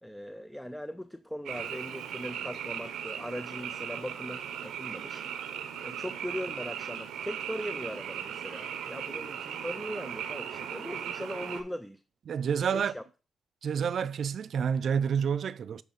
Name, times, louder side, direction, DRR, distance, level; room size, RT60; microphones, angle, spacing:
voice 1, 0.0-5.3 5.8-12.0 12.7-13.0, equal, 5° left, 0.5 m, -39 dB
Frog, 1.4-11.6, right 8 dB, 80° right, 0.9 m, -38 dB
voice 2, 12.3-12.9 13.6-15.8, right 7 dB, 65° right, 0.4 m, -29 dB
7.5 x 3.4 x 5.2 m
cardioid pair, 65°, 0 cm